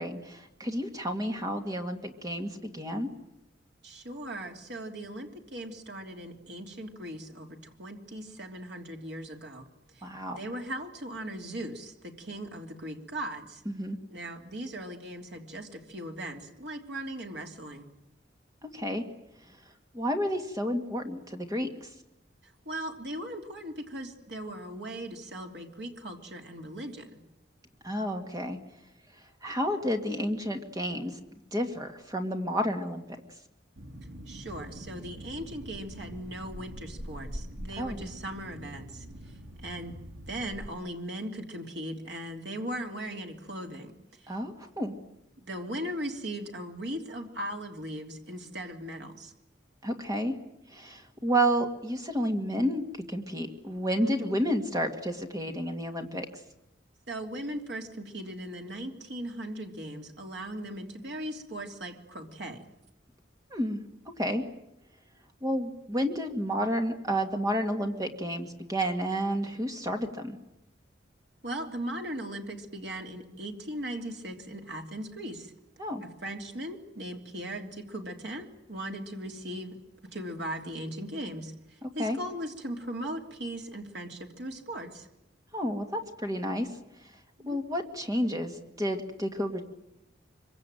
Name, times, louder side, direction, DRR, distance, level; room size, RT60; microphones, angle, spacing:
voice 1, 0.0-3.1 10.0-10.4 13.7-14.0 18.7-19.0 19.9-21.9 27.8-28.6 29.4-31.2 31.5-33.0 37.8-38.1 44.3-44.9 49.8-50.3 50.7-56.3 63.5-63.8 64.2-64.4 65.4-70.4 75.8-76.0 81.8-82.2 85.5-86.7 87.5-89.6, equal, 20° right, 4 dB, 2.1 m, -30 dB
voice 2, 3.8-9.7 9.9-10.0 10.3-13.6 14.1-17.9 22.6-27.2 34.3-39.1 39.6-39.9 40.3-43.9 44.2-44.3 45.4-49.3 54.0-54.4 57.1-62.6 71.4-75.5 76.0-79.8 80.1-85.1 87.4-87.6, right 1 dB, 65° right, 3 dB, 3.2 m, -38 dB
sound 1, 33.8-40.7, equal, 85° right, 2.8 m, -43 dB
25.0 x 24.0 x 9.2 m, 0.83 s
head